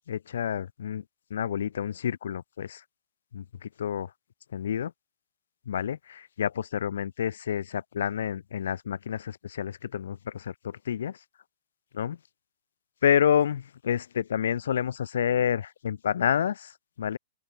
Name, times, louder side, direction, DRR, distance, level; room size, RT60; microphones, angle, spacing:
voice 1, 0.1-1.0 1.3-2.8 3.3-4.1 4.5-4.9 5.7-11.2 11.9-12.2 13.0-16.7 17.0-17.2, left 9 dB, 65° left, 2.9 m, -29 dB
open air
figure-of-eight pair, 115°, 0 cm